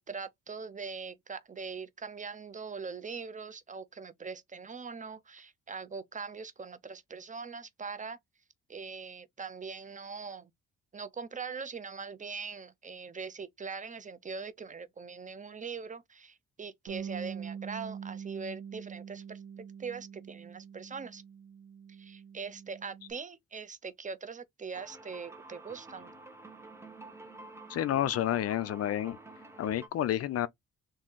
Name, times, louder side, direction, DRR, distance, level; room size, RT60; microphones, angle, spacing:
voice 1, 0.0-8.2 8.7-10.5 10.9-19.4 19.8-21.2 21.9-26.1, right 5 dB, 25° right, 0.5 m, -42 dB
Bass guitar, 16.9-23.1, right 7 dB, 70° right, 1.1 m, -44 dB
sound 1, 24.7-29.9, right 2 dB, 10° right, 0.9 m, -49 dB
voice 2, 27.7-29.2 29.6-30.5, left 12 dB, 55° left, 0.4 m, -30 dB
3.7 x 2.6 x 3.6 m
cardioid pair, 90°, 30 cm